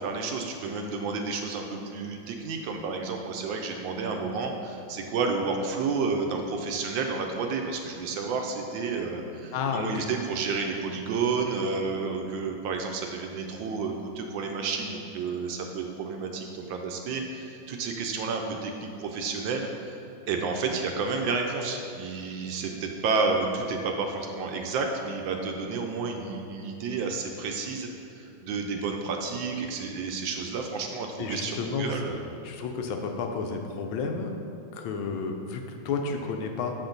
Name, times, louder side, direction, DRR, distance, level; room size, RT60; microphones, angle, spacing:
voice 1, 0.0-20.0 20.3-27.9 28.2-32.2, right 4 dB, 75° right, 3 dB, 1.2 m, -31 dB
voice 2, 9.5-10.1 31.2-32.0 32.4-34.4 34.7-36.7, left 5 dB, 80° left, 3 dB, 1.4 m, -31 dB
7.1 x 4.4 x 3.9 m, 2.8 s
omnidirectional pair, 2.2 m